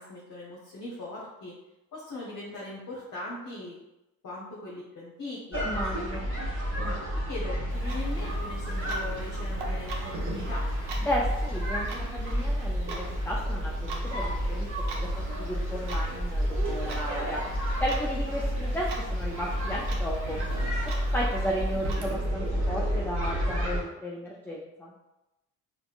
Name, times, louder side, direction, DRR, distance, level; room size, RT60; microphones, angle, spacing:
voice 1, 0.0-1.5 1.9-3.8 4.2-5.6 6.7-10.7, left 2 dB, 45° left, -5 dB, 0.9 m, -40 dB
sound 1, 5.5-23.8, equal, 30° right, 1.2 m, -30 dB
voice 2, 5.6-6.3 11.1-15.1 15.4-17.4 17.8-20.4 21.1-24.9, equal, 5° left, -3 dB, 0.3 m, -34 dB
Clock, 7.7-22.1, right 2 dB, 60° right, 0.8 m, -44 dB
4.1 x 2.1 x 2.4 m, 0.96 s
hypercardioid pair, 45°, 46 cm